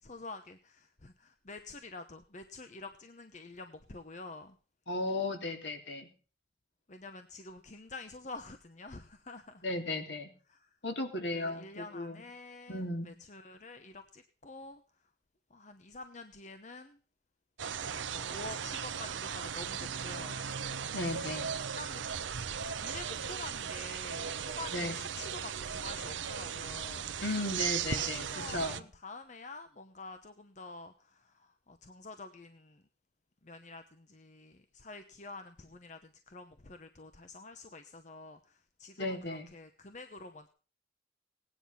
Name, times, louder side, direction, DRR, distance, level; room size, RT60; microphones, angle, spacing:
voice 1, 0.0-4.6 6.9-9.7 10.5-10.8 11.3-15.1 15.5-17.0 18.0-20.4 21.7-22.1 22.5-27.4 27.8-32.8 33.4-40.5, left 3 dB, 40° left, 8 dB, 0.9 m, -48 dB
voice 2, 4.9-6.1 9.6-10.3 10.8-12.2 12.7-13.1 20.9-21.5 24.7-25.0 27.2-28.8 39.0-39.5, left 2 dB, 65° left, 4 dB, 3.0 m, -35 dB
sound 1, 17.6-28.8, right 7 dB, 80° right, 0.8 m, -37 dB
18.0 x 9.9 x 5.7 m, 0.39 s
head